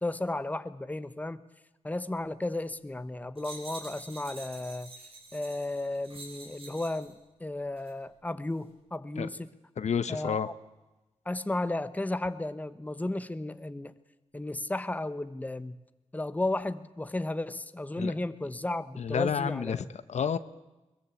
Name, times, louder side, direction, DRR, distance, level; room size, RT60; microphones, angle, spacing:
voice 1, 0.0-1.4 1.8-4.9 5.3-7.1 7.4-9.5 10.1-10.5 11.2-13.9 14.3-15.8 16.1-19.9, left 2 dB, 15° left, 12 dB, 1.1 m, -34 dB
sound 1, 3.4-7.1 7.8-7.9, right 3 dB, 55° right, 6.3 m, -47 dB
voice 2, 9.8-10.5 18.0-18.1 19.0-20.4, left 7 dB, 80° left, 13 dB, 1.0 m, -30 dB
22.0 x 21.5 x 8.5 m, 1.1 s
wide cardioid pair, 95°, 12 cm